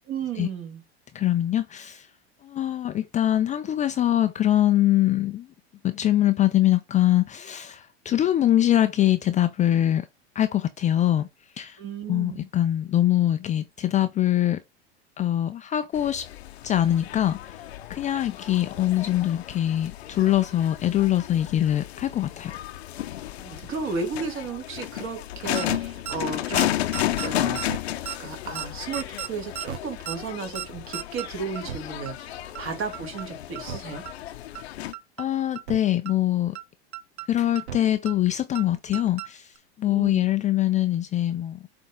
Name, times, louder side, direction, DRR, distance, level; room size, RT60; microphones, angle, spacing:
voice 1, 0.1-0.8 11.8-12.5 23.4-26.7 27.2-27.6 28.2-34.0 39.9-40.3, right 5 dB, 40° right, 2.7 m, -34 dB
voice 2, 1.1-2.1 2.4-5.5 5.8-10.1 10.4-11.3 11.6-11.8 12.1-14.6 15.2-16.3 16.6-17.6 17.9-22.5 35.2-36.6 37.3-41.6, left 12 dB, 25° left, 0.5 m, -23 dB
sound 1, 15.9-34.9, left 13 dB, 75° left, 0.8 m, -33 dB
sound 2, 25.6-25.8 26.1-26.2 26.6-26.7 26.9-27.3 27.6-27.8 28.1-28.2 28.6-28.7 28.9-29.3 29.6-29.8 30.1-30.2 30.6-30.7 30.9-31.3 31.6-31.8 32.1-32.2 32.6-32.7 32.9-33.3 33.6-33.8 34.1-34.2 34.6-34.7 34.9-35.3 35.6-35.8 36.1-36.2 36.6-36.7 36.9-37.3 37.6-37.8 38.1-38.2 38.6-38.7 38.9-39.3 39.6-39.7, right 11 dB, 80° right, 0.8 m, -34 dB
7.0 x 3.8 x 3.8 m
hypercardioid pair, 95°, 33 cm